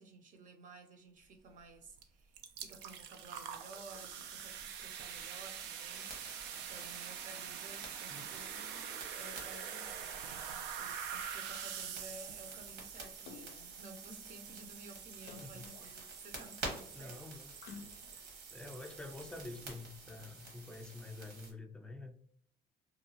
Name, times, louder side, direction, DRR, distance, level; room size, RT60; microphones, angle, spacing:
voice 1, 0.0-17.2 17.6-17.7, right 3 dB, 50° right, 0.6 m, -55 dB
sound 1, 2.0-2.1 2.3-20.1, right 8 dB, 90° right, 0.4 m, -46 dB
sound 2, 6.0-21.5, right 2 dB, 70° right, 1.2 m, -50 dB
Splash splatter, 13.3-13.9 15.2-16.4 17.6-18.4 19.0-19.1, left 6 dB, 75° left, 0.4 m, -53 dB
voice 2, 16.9-17.5 18.1-18.3 18.5-22.2, left 2 dB, 5° left, 0.4 m, -48 dB
2.8 x 2.3 x 2.8 m
cardioid pair, 110°, 17 cm